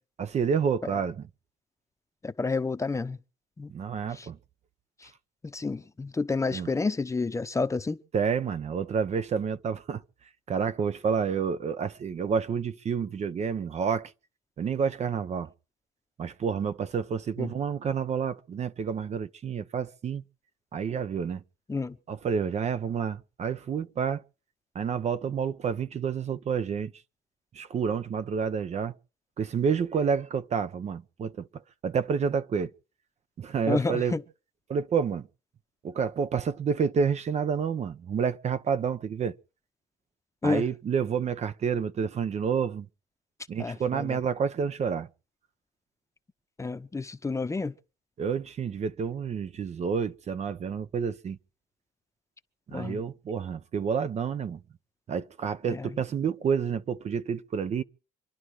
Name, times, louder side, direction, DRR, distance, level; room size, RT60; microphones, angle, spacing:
voice 1, 0.2-1.2 3.7-4.4 6.5-6.7 8.1-10.0 10.5-14.1 14.6-15.5 16.2-20.2 20.7-21.4 22.1-24.2 24.7-26.9 27.5-28.9 29.4-31.5 31.8-32.7 33.4-34.1 34.7-35.3 35.8-39.4 40.4-42.9 43.5-45.1 48.2-51.4 52.7-54.6 55.1-57.8, right 6 dB, 40° right, 0.8 m, -29 dB
voice 2, 2.2-3.2 3.6-3.7 4.1-4.3 5.0-5.1 5.4-8.0 17.4-17.5 21.7-22.0 33.7-34.2 40.4-40.6 43.6-44.2 46.6-47.7 52.7-53.0 55.7-55.9, left 4 dB, 15° left, 0.9 m, -30 dB
26.5 x 11.0 x 4.8 m
cardioid pair, 110°, 17 cm